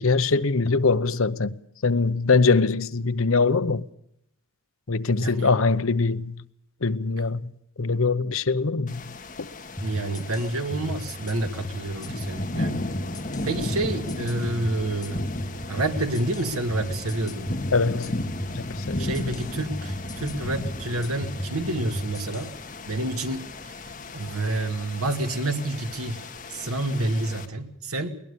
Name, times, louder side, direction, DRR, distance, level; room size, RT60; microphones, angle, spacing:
voice 1, 0.0-1.5 1.8-3.8 4.9-6.4 6.8-7.5 7.8-9.0 17.7-19.3, left 4 dB, 70° left, 0.9 m, -23 dB
voice 2, 5.2-5.5 9.8-12.8 13.4-15.2 15.7-17.6 19.0-22.5 22.9-23.8 24.1-26.2 26.5-28.2, right 2 dB, 90° right, 2.3 m, -29 dB
sound 1, 8.9-27.5, left 2 dB, 35° left, 2.0 m, -35 dB
sound 2, 9.8-22.5, equal, 15° left, 1.4 m, -36 dB
21.0 x 20.5 x 6.9 m
head